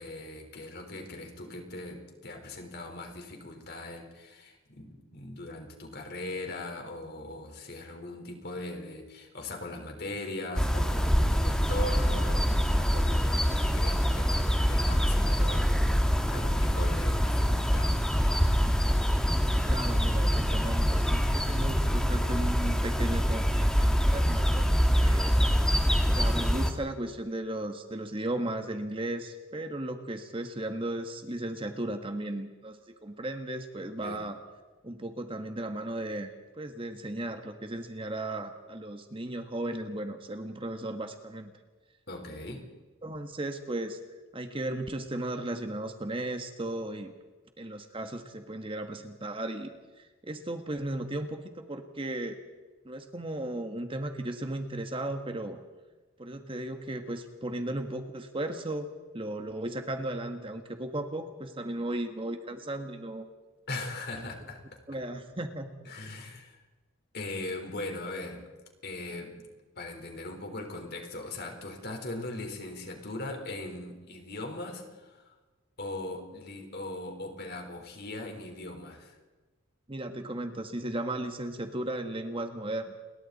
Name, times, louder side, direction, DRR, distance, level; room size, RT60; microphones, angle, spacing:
voice 1, 0.0-18.2 34.0-34.2 42.1-42.7 63.7-64.8 65.9-66.6 67.1-68.4 68.8-69.5 69.8-75.2 75.8-79.2, left 2 dB, 50° left, 3 dB, 4.1 m, -40 dB
sound 1, 10.5-26.7, equal, 5° left, 1.6 m, -25 dB
voice 2, 19.7-25.3 26.1-34.4 34.8-41.5 43.0-44.0 44.3-47.1 47.6-49.7 50.0-52.4 52.8-55.6 56.2-58.9 59.1-63.3 64.2-64.3 64.9-65.7 79.9-82.9, right 1 dB, 25° right, 6 dB, 1.5 m, -36 dB
30.0 x 22.0 x 4.2 m, 1.2 s
head